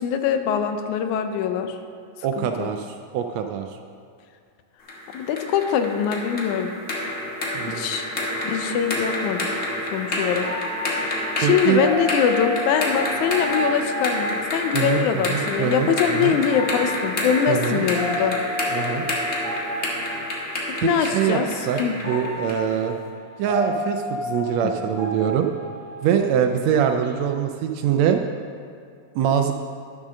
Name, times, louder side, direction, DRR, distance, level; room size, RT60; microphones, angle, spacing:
voice 1, 0.0-1.8 2.4-2.7 5.1-6.7 7.7-8.1 8.4-10.5 11.0-18.4 20.8-21.5 21.7-22.0 24.6-24.7, left 8 dB, 80° left, 7 dB, 2.1 m, -23 dB
voice 2, 2.2-3.8 7.5-7.9 11.4-11.8 14.7-16.4 17.5-17.8 18.7-19.1 20.8-21.4 21.7-23.0 23.4-25.5 26.0-28.2 29.1-29.5, right 9 dB, 80° right, 5 dB, 1.6 m, -23 dB
sound 1, 4.9-22.7, left 1 dB, 40° left, 1.1 m, -29 dB
sound 2, 8.9-9.1 10.4-15.2 16.4-20.7 21.5-21.6 22.0-26.4 26.8-27.1, left 1 dB, 30° right, 3.5 m, -32 dB
11.0 x 7.2 x 6.3 m, 2.3 s
omnidirectional pair, 3.4 m